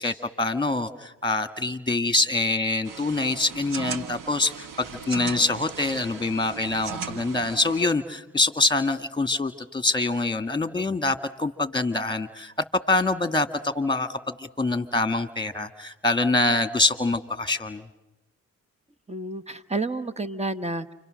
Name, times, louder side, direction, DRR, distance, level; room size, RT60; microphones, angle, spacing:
voice 1, 0.0-12.5 12.9-17.8, left 2 dB, 15° left, 10 dB, 1.9 m, -25 dB
sound 1, 2.8-7.9, right 6 dB, 75° right, 1.4 m, -37 dB
voice 2, 19.1-20.9, right 3 dB, 20° right, 11 dB, 1.3 m, -30 dB
29.5 x 25.5 x 6.5 m, 0.91 s
supercardioid pair, 50°, 33 cm